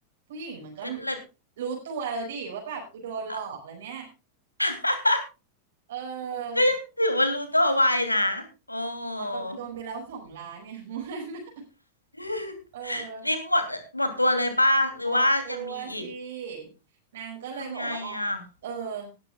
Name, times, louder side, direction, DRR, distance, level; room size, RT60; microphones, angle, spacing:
voice 1, 0.3-1.0 1.6-4.1 5.9-6.6 9.2-11.6 12.7-13.3 15.0-16.7 17.1-18.2 18.6-19.1, right 6 dB, 60° right, 0 dB, 5.3 m, -36 dB
voice 2, 0.8-1.2 3.3-3.4 4.6-5.2 6.5-9.6 12.2-12.5 12.8-16.0 17.6-18.4, left 1 dB, 85° left, 8 dB, 3.0 m, -25 dB
18.5 x 13.0 x 2.4 m, 0.30 s
figure-of-eight pair, 90°, 0 cm